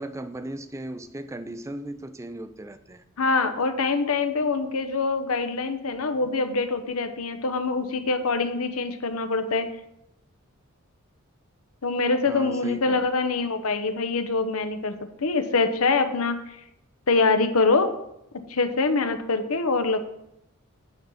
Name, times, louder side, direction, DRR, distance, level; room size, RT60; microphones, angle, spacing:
voice 1, 0.0-3.0 12.3-13.1, right 1 dB, 15° right, 11 dB, 0.4 m, -37 dB
voice 2, 3.2-9.7 11.8-16.6 17.1-17.9 18.5-20.0, left 3 dB, 80° left, 9 dB, 0.9 m, -24 dB
9.2 x 3.9 x 7.1 m, 0.80 s
head